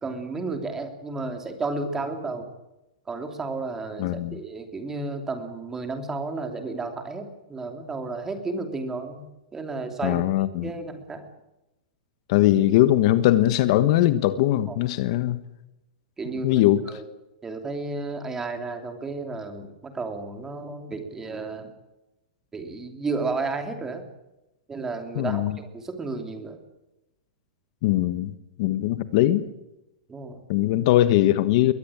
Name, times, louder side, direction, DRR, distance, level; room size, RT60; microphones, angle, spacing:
voice 1, 0.0-2.5 3.1-9.3 9.5-10.2 10.6-11.2 14.7-14.8 16.2-17.0 17.4-21.7 22.5-24.0 24.7-26.6 30.1-30.4, right 3 dB, 10° right, 6 dB, 3.0 m, -32 dB
voice 2, 4.0-4.4 10.0-10.7 12.3-15.4 16.4-16.8 25.1-25.5 27.8-28.3 28.6-29.4 30.5-31.7, left 14 dB, 45° left, 13 dB, 1.3 m, -20 dB
22.5 x 19.0 x 8.8 m, 0.94 s
supercardioid pair, 160°, 4 cm